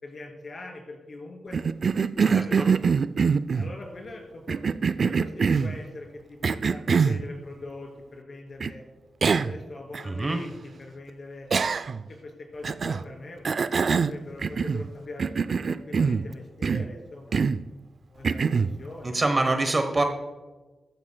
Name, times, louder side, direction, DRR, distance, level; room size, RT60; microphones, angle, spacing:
voice 1, 0.0-1.6 2.2-3.2 3.5-4.6 5.0-8.8 9.3-10.5 10.8-11.5 12.2-13.5 14.0-15.3 15.6-17.3 18.1-19.2, left 2 dB, 50° left, 1 dB, 2.8 m, -42 dB
Cough, 1.5-3.7 4.5-5.8 6.4-7.2 8.6-8.7 9.2-9.6 9.9-10.0 11.5-12.1 12.6-13.0 13.4-14.9 15.2-16.3 16.6-16.9 17.3-17.6 18.2-18.7, right 5 dB, 55° right, 0.3 m, -24 dB
voice 2, 2.2-2.7 10.0-10.4 19.1-20.0, right 2 dB, 30° right, 6 dB, 1.0 m, -25 dB
15.0 x 12.5 x 2.2 m, 1.3 s
cardioid pair, 80°, 0 cm